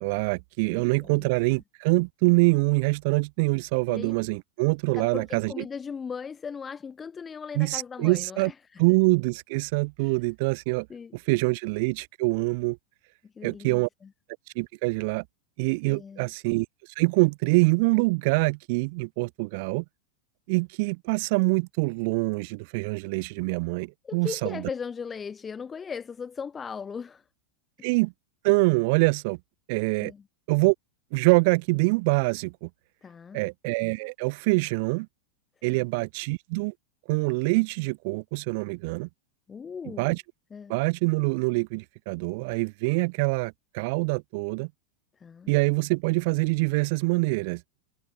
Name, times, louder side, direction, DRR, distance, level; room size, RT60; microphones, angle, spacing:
voice 1, 0.0-5.5 7.6-8.5 8.8-10.9 11.3-12.8 13.4-13.9 14.6-15.2 15.6-16.7 17.0-19.8 20.5-24.6 27.8-28.1 28.4-29.4 29.7-30.1 30.5-30.7 31.1-32.7 33.3-35.1 35.6-36.7 37.1-39.1 40.0-40.2 40.7-44.7 45.5-47.6, right 28 dB, 45° right, 0.4 m, -25 dB
voice 2, 0.7-1.3 3.9-4.2 5.0-8.8 10.0-10.1 10.9-11.2 13.2-14.1 15.9-16.3 24.0-27.2 30.0-30.2 33.0-33.4 35.6-35.8 39.5-40.2 40.5-40.8 45.2-45.5, left 6 dB, 20° left, 1.1 m, -38 dB
figure-of-eight pair, 90°, 0 cm